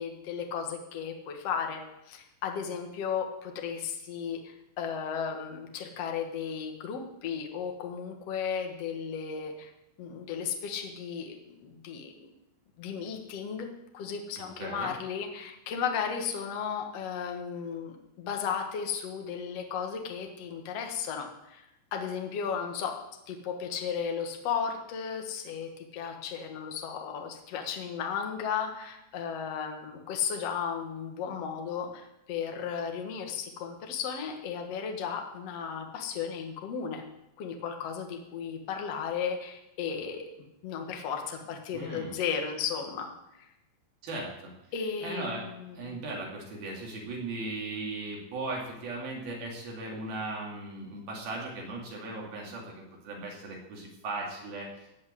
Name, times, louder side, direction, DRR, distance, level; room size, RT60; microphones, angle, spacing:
voice 1, 0.0-9.7 10.0-12.3 12.8-13.7 13.9-21.6 21.9-23.0 23.3-37.0 37.4-40.2 40.6-43.5 44.7-45.9, left 7 dB, 55° left, 3 dB, 1.8 m, -35 dB
voice 2, 14.4-14.9 41.7-42.1 44.0-44.5 45.0-45.5 45.8-54.7, right 2 dB, 55° right, -1 dB, 4.4 m, -37 dB
17.0 x 5.8 x 9.3 m, 0.88 s
omnidirectional pair, 5.2 m